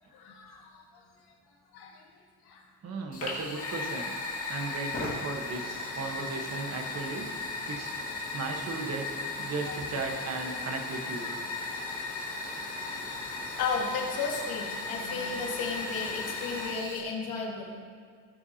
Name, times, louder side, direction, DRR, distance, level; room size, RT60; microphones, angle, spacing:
voice 1, 0.1-1.0 1.7-2.1 2.4-2.6 4.3-4.5 9.7-9.8 11.2-12.2 12.9-13.1 13.6-17.7, left 4 dB, 70° left, -1 dB, 2.0 m, -35 dB
voice 2, 2.8-4.1 4.5-7.3 7.7-8.0 8.3-9.1 9.4-11.3, right 3 dB, 40° right, 2 dB, 1.3 m, -36 dB
Fire, 3.1-17.0, left 3 dB, 35° left, 2.1 m, -36 dB
17.5 x 8.0 x 2.9 m, 2.1 s
cardioid pair, 175°, 38 cm